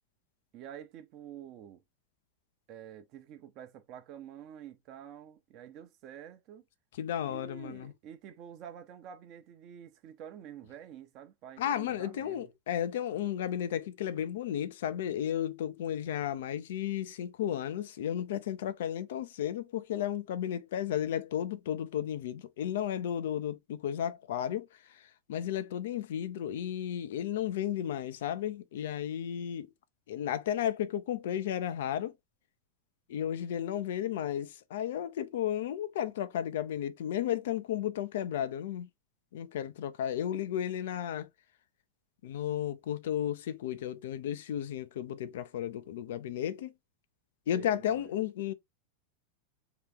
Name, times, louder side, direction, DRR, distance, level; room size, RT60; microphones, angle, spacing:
voice 1, 0.5-1.8 2.7-6.6 7.3-12.5 47.5-48.1, right 9 dB, 40° right, 0.8 m, -48 dB
voice 2, 7.0-7.9 11.6-29.7 30.1-32.1 33.1-38.9 39.3-41.3 42.2-46.7 47.5-48.5, left 10 dB, 55° left, 0.4 m, -33 dB
3.3 x 2.9 x 3.3 m
figure-of-eight pair, 90°, 0 cm